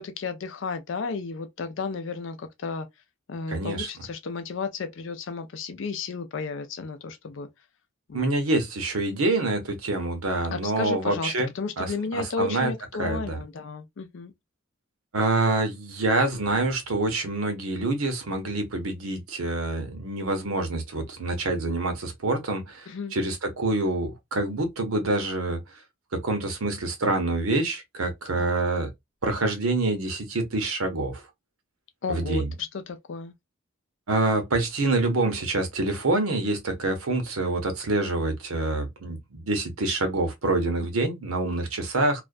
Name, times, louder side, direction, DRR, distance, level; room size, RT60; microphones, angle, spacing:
voice 1, 0.0-2.9 3.3-7.5 8.1-8.4 10.5-14.3 22.9-23.1 28.4-28.5 32.0-33.3, left 4 dB, 60° left, 0.4 m, -33 dB
voice 2, 3.5-3.9 8.1-11.5 11.8-11.9 12.1-12.7 13.0-13.4 15.1-25.6 26.2-28.9 29.2-31.2 32.1-32.5 34.1-42.2, right 2 dB, 85° right, 0.8 m, -26 dB
2.4 x 2.1 x 2.4 m
head